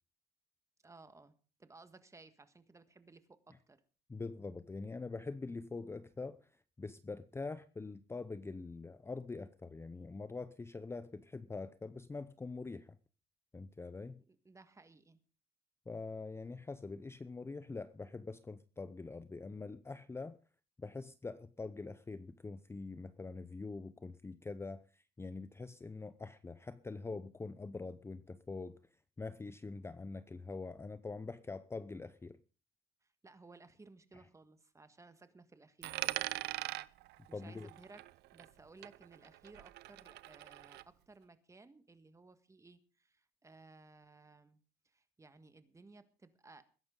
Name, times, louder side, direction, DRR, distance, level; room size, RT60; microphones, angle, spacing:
voice 1, 0.8-3.8 14.3-15.2 33.0-36.3 37.3-38.0 38.3-44.6 44.8-46.6, right 3 dB, 20° right, 11 dB, 1.6 m, -59 dB
voice 2, 4.1-13.0 13.5-14.2 15.9-20.4 20.8-28.8 29.2-32.4 34.1-34.2 37.3-37.7, left 3 dB, 15° left, 13 dB, 0.6 m, -44 dB
Coin (dropping), 35.8-38.6 38.8-40.8, right 17 dB, 80° right, 0.6 m, -42 dB
21.0 x 11.0 x 3.8 m, 0.36 s
cardioid pair, 110°, 17 cm